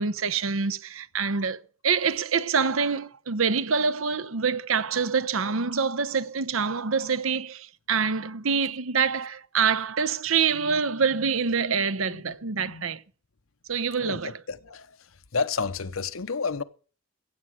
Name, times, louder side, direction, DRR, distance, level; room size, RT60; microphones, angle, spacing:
voice 1, 0.0-13.0 13.7-14.4, right 5 dB, 75° right, 0.8 m, -26 dB
voice 2, 14.0-14.9 15.3-16.6, left 4 dB, 75° left, 0.9 m, -30 dB
15.5 x 8.6 x 6.3 m
head